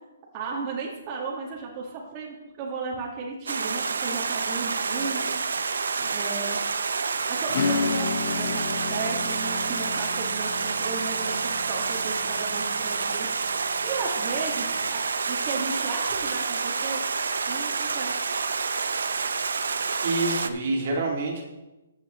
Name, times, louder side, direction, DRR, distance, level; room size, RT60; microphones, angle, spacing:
voice 1, 0.3-5.4 6.0-6.6 7.3-13.5 13.8-17.0 17.5-18.2, right 4 dB, 30° right, -3 dB, 1.8 m, -35 dB
Stream, 3.5-20.5, right 5 dB, 85° right, 0.7 m, -28 dB
Acoustic guitar / Strum, 7.5-13.7, left 5 dB, 45° left, 0.7 m, -32 dB
voice 2, 20.0-21.4, right 2 dB, 50° right, 0 dB, 2.3 m, -27 dB
14.5 x 7.5 x 3.1 m, 1.0 s
hypercardioid pair, 155°, 0 cm